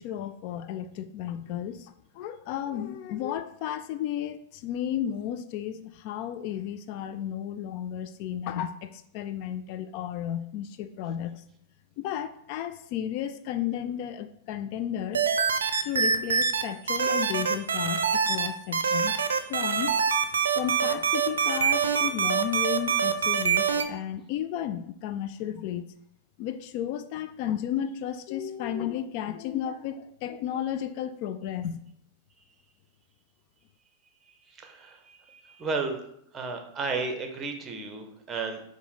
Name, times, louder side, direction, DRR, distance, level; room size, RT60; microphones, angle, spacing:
voice 1, 0.0-11.4 12.0-15.3 15.8-19.1 19.5-20.0 20.5-25.9 26.4-31.9, left 10 dB, 55° left, 11 dB, 0.3 m, -33 dB
sound 1, 15.1-16.6 16.9-18.5 18.7-23.8, right 6 dB, 90° right, 0.4 m, -24 dB
voice 2, 34.3-36.0 36.3-38.6, right 4 dB, 25° right, 5 dB, 0.9 m, -33 dB
5.1 x 2.1 x 4.8 m, 0.72 s
hypercardioid pair, 110°, 0 cm